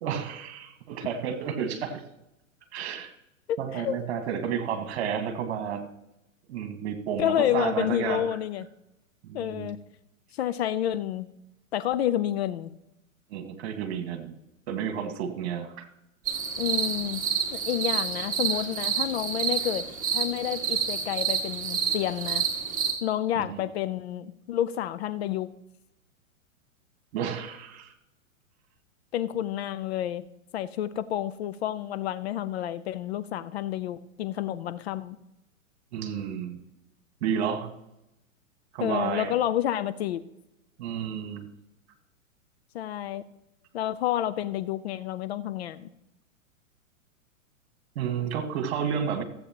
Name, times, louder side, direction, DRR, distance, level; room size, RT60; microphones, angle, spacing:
voice 1, 0.0-2.0 2.7-3.1 3.6-5.9 6.5-8.2 9.2-9.7 13.3-14.3 14.7-15.9 23.4-23.6 27.1-27.9 35.9-36.6 37.2-37.7 38.7-39.4 40.8-41.5 48.0-49.2, right 7 dB, 50° right, 8 dB, 1.7 m, -31 dB
voice 2, 3.5-3.9 7.2-8.7 9.3-9.8 10.3-11.3 11.7-12.7 16.6-17.2 17.5-19.8 20.1-22.4 23.0-25.5 29.1-30.2 30.5-35.2 38.8-40.2 42.7-43.2 43.7-45.9, left 11 dB, 50° left, 14 dB, 0.6 m, -29 dB
sound 1, 16.3-22.9, right 7 dB, 20° right, 1.9 m, -29 dB
15.5 x 7.8 x 2.9 m, 0.88 s
hypercardioid pair, 115°, 41 cm